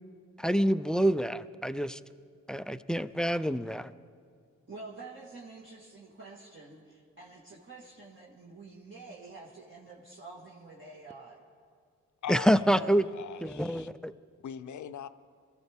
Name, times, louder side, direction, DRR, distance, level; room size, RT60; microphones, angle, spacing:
voice 1, 0.4-2.0 2.5-3.9 12.3-13.0 13.4-14.1, equal, 5° left, 14 dB, 0.3 m, -27 dB
voice 2, 4.7-11.4 12.7-12.9, right 3 dB, 40° right, -4 dB, 1.7 m, -47 dB
voice 3, 12.2-12.8 13.1-13.9 14.4-15.1, left 8 dB, 70° left, 12 dB, 0.6 m, -41 dB
23.0 x 14.5 x 3.5 m, 2.1 s
cardioid pair, 85°, 30 cm